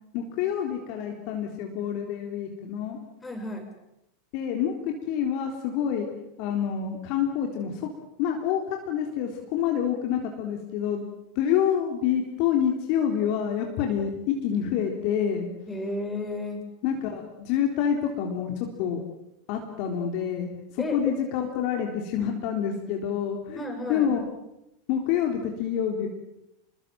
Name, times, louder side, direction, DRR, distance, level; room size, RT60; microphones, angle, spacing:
voice 1, 0.1-3.0 4.3-6.1 6.4-7.9 8.2-11.0 11.4-15.5 16.8-19.0 19.5-23.6 23.9-24.3 24.9-26.1, left 8 dB, 45° left, 2 dB, 3.9 m, -27 dB
voice 2, 3.2-3.7 15.7-16.6 20.8-21.1 23.6-24.1, left 1 dB, 10° left, 3 dB, 7.5 m, -32 dB
28.5 x 21.0 x 7.7 m, 0.88 s
figure-of-eight pair, 85°, 0 cm